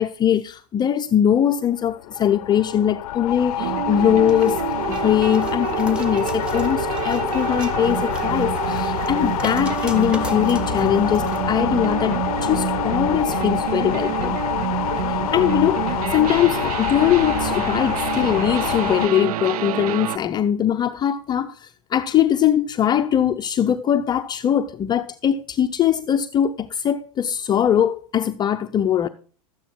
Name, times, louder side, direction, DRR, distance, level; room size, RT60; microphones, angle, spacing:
voice 1, 0.0-4.6 4.9-14.4 15.1-29.1, left 10 dB, 20° left, 0.5 m, -21 dB
sound 1, 1.7-19.1, left 15 dB, 70° left, 0.5 m, -27 dB
sound 2, 3.6-20.2, right 11 dB, 80° right, 0.5 m, -27 dB
sound 3, 4.3-11.4 11.8-12.0, left 1 dB, 5° right, 1.6 m, -40 dB
12.5 x 9.0 x 4.4 m
hypercardioid pair, 120°, 19 cm